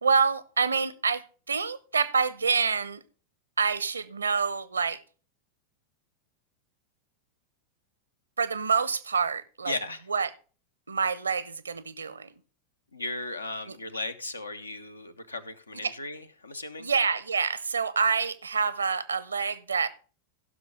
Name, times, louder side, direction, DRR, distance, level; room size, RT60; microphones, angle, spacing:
voice 1, 0.0-3.0 3.6-5.0 8.4-9.8 10.1-10.3 10.9-12.3 15.8-15.9 16.8-19.9, right 5 dB, 75° right, 0.6 m, -27 dB
voice 2, 9.6-10.0 12.9-16.9, left 2 dB, 80° left, 0.7 m, -36 dB
15.5 x 6.0 x 3.6 m
figure-of-eight pair, 90°, 0 cm